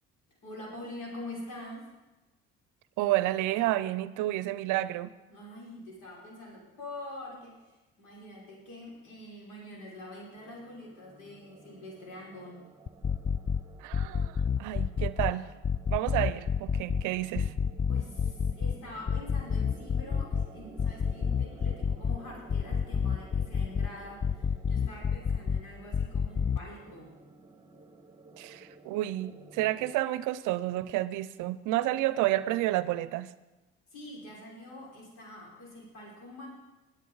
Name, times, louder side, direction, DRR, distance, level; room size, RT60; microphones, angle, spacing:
voice 1, 0.4-1.8 5.3-12.6 17.9-27.1 33.9-36.5, left 1 dB, 70° left, -4 dB, 5.4 m, -45 dB
voice 2, 3.0-5.1 13.8-15.5 15.9-17.5 28.4-33.3, right 16 dB, 70° right, 16 dB, 0.6 m, -30 dB
sound 1, 10.3-29.9, right 3 dB, 15° right, 1.3 m, -52 dB
sound 2, 12.9-13.6 13.9-15.3 15.6-17.0 17.3-18.7 19.1-20.5 20.8-22.2 22.5-23.9 24.2-25.6 25.9-26.6, left 7 dB, 20° left, 0.4 m, -28 dB
20.5 x 8.4 x 4.0 m, 1.1 s
hypercardioid pair, 60°, 31 cm